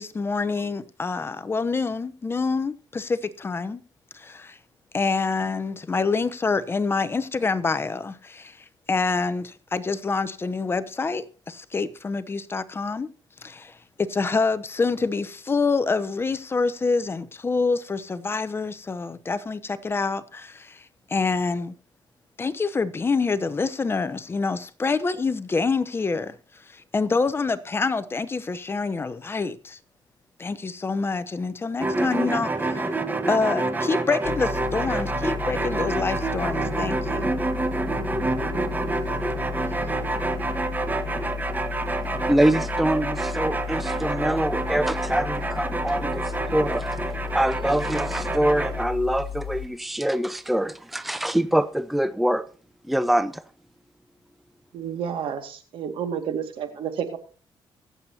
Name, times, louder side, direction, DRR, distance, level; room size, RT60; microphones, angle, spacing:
voice 1, 0.0-3.8 4.1-4.6 4.9-8.6 8.9-13.1 13.4-20.8 21.1-21.7 22.4-26.4 26.7-29.8 30.4-33.0 33.3-37.3 39.8-39.9, left 4 dB, 25° left, 0.8 m, -26 dB
sound 1, 31.8-48.8, right 2 dB, 20° right, 1.2 m, -28 dB
sound 2, 34.2-49.7, left 8 dB, 80° left, 1.3 m, -34 dB
voice 2, 42.3-46.2 46.5-47.0 47.3-52.5 52.9-53.4, right 1 dB, ahead, 0.6 m, -24 dB
voice 3, 54.7-57.2, right 8 dB, 80° right, 2.1 m, -30 dB
24.0 x 7.9 x 2.9 m
cardioid pair, 120°, 9 cm